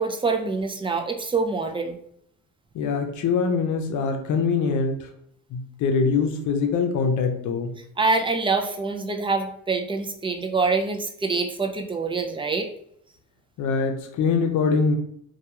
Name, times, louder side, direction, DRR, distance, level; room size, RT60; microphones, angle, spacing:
voice 1, 0.0-2.0 8.0-12.7, right 4 dB, 15° right, 4 dB, 0.3 m, -25 dB
voice 2, 2.7-5.1 5.5-7.7 13.6-15.0, left 5 dB, 75° left, 4 dB, 0.6 m, -23 dB
2.3 x 2.2 x 2.8 m, 0.69 s
cardioid pair, 90°, 30 cm